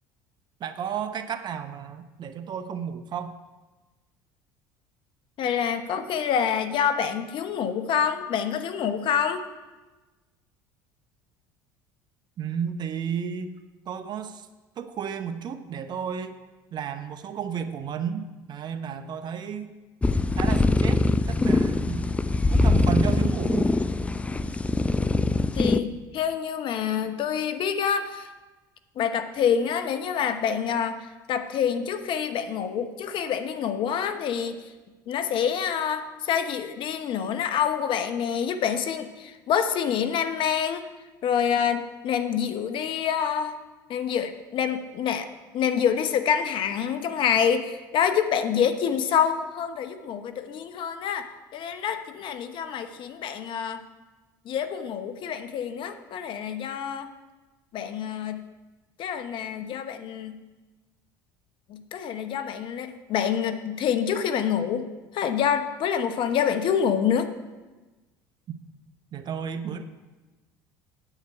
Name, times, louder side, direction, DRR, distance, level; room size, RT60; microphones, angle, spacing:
voice 1, 0.6-3.3 12.4-13.5 13.9-14.5 14.8-16.4 16.7-19.7 20.3-22.0 22.5-23.7 69.1-69.8, right 7 dB, 45° right, 9 dB, 0.8 m, -32 dB
voice 2, 5.4-9.4 25.6-28.3 29.0-34.7 35.1-40.9 41.2-43.6 43.9-45.3 45.5-51.3 51.5-53.8 54.4-57.1 57.7-58.4 59.0-60.4 61.7-64.9 65.1-67.3, left 8 dB, 55° left, 9 dB, 0.9 m, -27 dB
sound 1, 20.0-25.8, left 2 dB, 10° left, 0.4 m, -23 dB
9.1 x 8.3 x 4.6 m, 1.2 s
hypercardioid pair, 75°, 10 cm